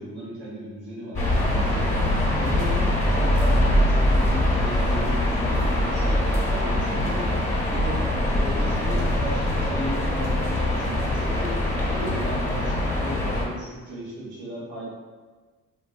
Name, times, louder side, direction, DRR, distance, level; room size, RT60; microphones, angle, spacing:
voice 1, 0.0-2.0 2.3-7.4 7.7-8.0 8.4-11.6 11.8-14.9, right 1 dB, 85° right, -10 dB, 1.0 m, -36 dB
sound 1, 1.1-13.4, left 1 dB, 25° left, 1.2 m, -23 dB
sound 2, 3.6-12.0 12.3-12.4, right 2 dB, 60° right, 1.0 m, -32 dB
3.1 x 2.8 x 2.3 m, 1.4 s
cardioid pair, 90°, 30 cm